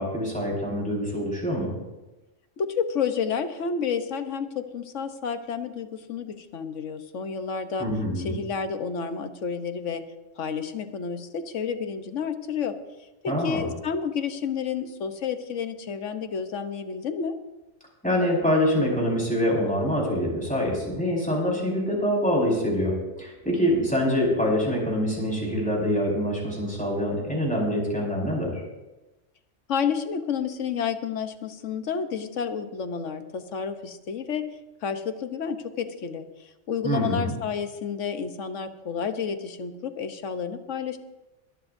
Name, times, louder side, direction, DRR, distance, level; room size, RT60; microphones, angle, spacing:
voice 1, 0.0-1.7 7.8-8.3 13.3-13.7 18.0-28.6 36.8-37.3, equal, 5° left, -4 dB, 4.8 m, -25 dB
voice 2, 2.6-7.9 8.2-10.0 10.4-12.7 13.2-17.4 29.7-34.5 34.8-41.0, left 6 dB, 80° left, 9 dB, 1.3 m, -30 dB
22.5 x 12.5 x 2.6 m, 1.0 s
omnidirectional pair, 1.3 m